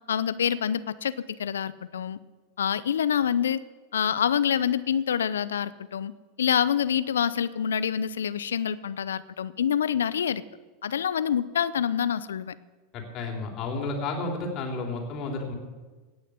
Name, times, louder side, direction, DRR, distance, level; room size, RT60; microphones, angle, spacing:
voice 1, 0.1-2.2 2.6-3.6 3.9-6.1 6.4-10.4 10.8-12.5, left 8 dB, 85° left, 16 dB, 0.5 m, -26 dB
voice 2, 12.9-15.5, left 3 dB, 45° left, 1 dB, 3.5 m, -32 dB
18.0 x 6.5 x 7.8 m, 1.3 s
hypercardioid pair, 95°, 0 cm